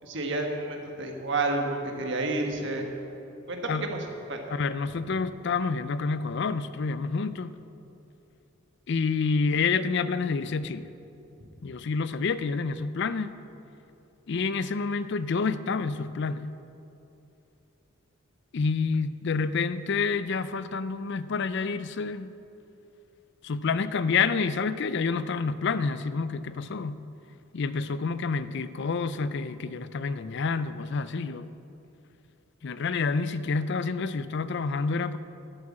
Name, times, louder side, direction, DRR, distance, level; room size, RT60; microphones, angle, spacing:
voice 1, 0.0-2.8 3.5-4.0 4.3-4.4 11.4-11.5, right 2 dB, 60° right, 2 dB, 1.6 m, -30 dB
voice 2, 4.5-7.6 8.9-10.9 11.6-13.3 14.3-16.5 18.5-22.3 23.4-27.0 27.5-31.5 32.6-35.2, left 4 dB, 55° left, 14 dB, 0.4 m, -28 dB
12.0 x 8.3 x 7.4 m, 2.8 s
head